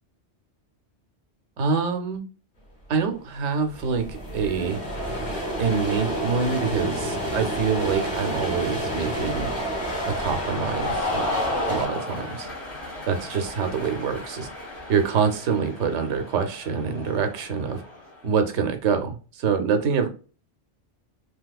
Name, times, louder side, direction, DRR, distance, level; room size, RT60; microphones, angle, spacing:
voice 1, 1.6-2.2 2.9-4.8 5.6-9.5 10.1-11.2 11.7-12.5 13.1-14.5 14.9-17.8 18.2-20.1, right 6 dB, 90° right, 6 dB, 0.9 m, -25 dB
sound 1, 3.1-3.2 3.4-11.9, right 1 dB, 45° left, 1.2 m, -30 dB
Cheering, 4.8-18.3, left 2 dB, 65° left, 1.5 m, -35 dB
3.3 x 2.8 x 2.2 m, 0.37 s
omnidirectional pair, 1.2 m